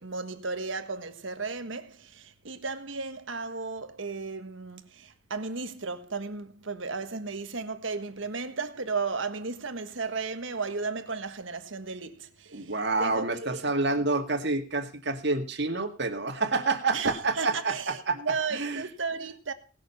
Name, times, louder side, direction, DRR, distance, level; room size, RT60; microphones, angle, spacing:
voice 1, 0.0-13.6 16.9-19.5, right 4 dB, 75° right, 1.4 m, -34 dB
voice 2, 12.5-18.2 18.5-18.8, right 3 dB, 60° right, 2.1 m, -28 dB
18.5 x 6.8 x 5.7 m
head